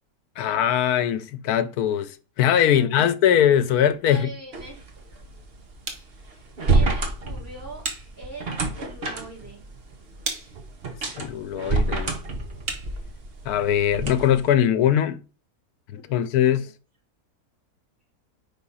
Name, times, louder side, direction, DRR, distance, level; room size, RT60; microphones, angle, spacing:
voice 1, 0.4-4.3 11.1-12.1 13.4-15.2 15.9-16.7, left 10 dB, 90° left, 1.1 m, -21 dB
voice 2, 2.7-3.2 3.7-4.9 6.3-7.8 8.2-9.6 15.9-16.7, right 2 dB, 10° right, 3.1 m, -43 dB
sound 1, 3.8-13.6, right 4 dB, 75° right, 1.8 m, -41 dB
sound 2, 4.5-14.5, right 3 dB, 45° right, 1.2 m, -28 dB
4.7 x 3.9 x 5.4 m
omnidirectional pair, 1.6 m